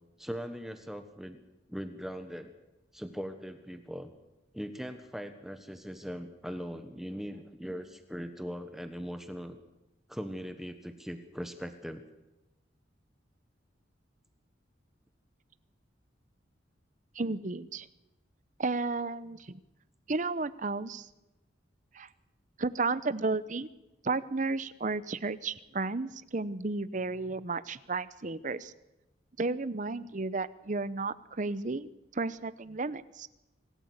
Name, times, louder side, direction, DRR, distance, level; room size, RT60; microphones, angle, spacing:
voice 1, 0.2-1.4 1.7-2.5 2.9-4.1 4.5-9.6 10.1-12.0, equal, ahead, 8 dB, 1.2 m, -40 dB
voice 2, 17.1-17.9 18.6-19.6 20.1-21.1 21.9-22.1 22.6-23.7 24.0-28.7 29.4-33.3, right 3 dB, 40° right, 15 dB, 0.8 m, -33 dB
25.5 x 14.0 x 8.1 m, 0.97 s
head